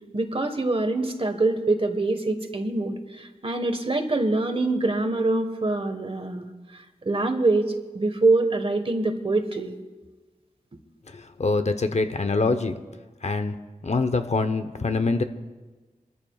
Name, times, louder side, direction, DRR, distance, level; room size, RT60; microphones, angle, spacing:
voice 1, 0.1-9.7, right 2 dB, 40° right, 7 dB, 1.4 m, -25 dB
voice 2, 11.1-12.7 13.2-13.5 13.8-15.2, left 3 dB, 50° left, 9 dB, 0.9 m, -24 dB
26.0 x 14.0 x 2.4 m, 1.3 s
wide cardioid pair, 90°, 14 cm